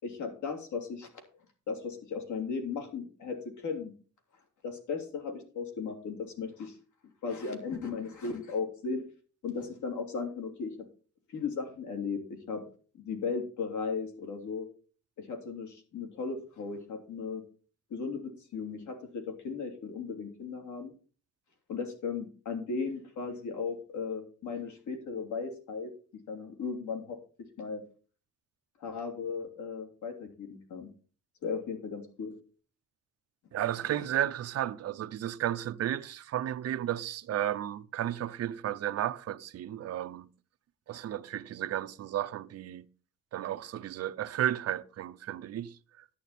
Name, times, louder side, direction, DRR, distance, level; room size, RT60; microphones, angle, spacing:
voice 1, 0.0-1.1 1.7-3.9 4.6-6.8 7.2-9.0 9.4-10.7 11.3-12.6 13.0-14.7 15.2-17.4 17.9-20.9 21.7-25.9 26.3-27.2 27.6-27.8 28.8-30.9 31.4-32.3 33.8-34.1, left 5 dB, 75° left, 3.2 m, -36 dB
voice 2, 33.5-40.3 40.9-42.8 43.3-45.7, right 11 dB, 55° right, 0.7 m, -33 dB
11.0 x 9.1 x 4.3 m
wide cardioid pair, 160°, 30 cm